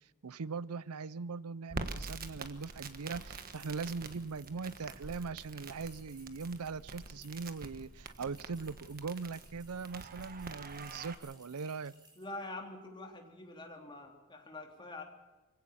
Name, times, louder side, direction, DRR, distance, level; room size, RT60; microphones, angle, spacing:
voice 1, 0.2-11.9, right 4 dB, 80° right, 19 dB, 0.6 m, -40 dB
Crackle, 1.7-11.1, right 3 dB, 40° right, 1.4 m, -46 dB
sound 1, 2.3-12.4, right 2 dB, 20° right, 5.8 m, -62 dB
voice 2, 12.2-15.0, left 2 dB, 20° left, 2 dB, 3.5 m, -45 dB
24.5 x 16.5 x 7.1 m, 1.1 s
head